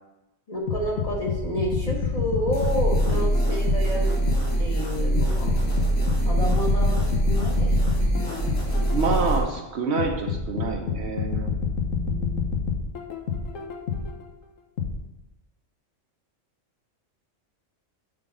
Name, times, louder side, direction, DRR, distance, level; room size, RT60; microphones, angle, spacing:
voice 1, 0.5-4.2 4.6-5.6 6.2-8.2 11.8-12.7, equal, 30° left, -2 dB, 1.4 m, -30 dB
sound 1, 0.7-4.6 5.2-9.4 10.0-14.2 14.8-14.9, left 6 dB, 90° left, 1.3 m, -28 dB
sound 2, 2.5-9.4, right 1 dB, 50° left, 2.4 m, -23 dB
voice 2, 3.1-3.6 8.9-11.5, right 4 dB, 60° right, 3 dB, 1.1 m, -28 dB
7.8 x 3.8 x 6.1 m, 1.0 s
omnidirectional pair, 1.3 m